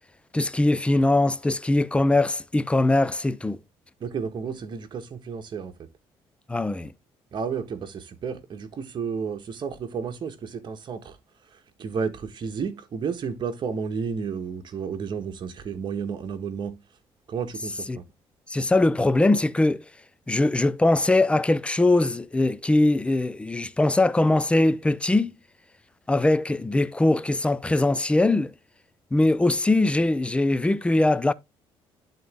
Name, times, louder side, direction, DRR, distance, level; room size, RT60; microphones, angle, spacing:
voice 1, 0.3-3.6 6.5-6.9 17.9-18.0 18.5-19.8 20.3-25.3 26.1-28.5 29.1-31.3, left 2 dB, 10° left, 0.5 m, -21 dB
voice 2, 4.0-5.9 7.3-11.2 11.5-16.8 17.3-18.0, right 6 dB, 50° right, 1.4 m, -32 dB
10.5 x 4.0 x 3.5 m
cardioid pair, 95°, 10 cm